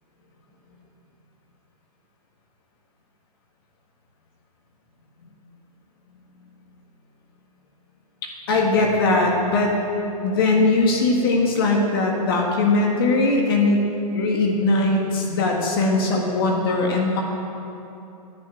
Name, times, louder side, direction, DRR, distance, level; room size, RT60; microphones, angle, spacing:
voice 1, 8.5-9.8 10.2-13.9 14.1-17.2, left 2 dB, 35° left, 0 dB, 1.6 m, -20 dB
10.5 x 8.4 x 8.8 m, 2.8 s
hypercardioid pair, 165°, 20 cm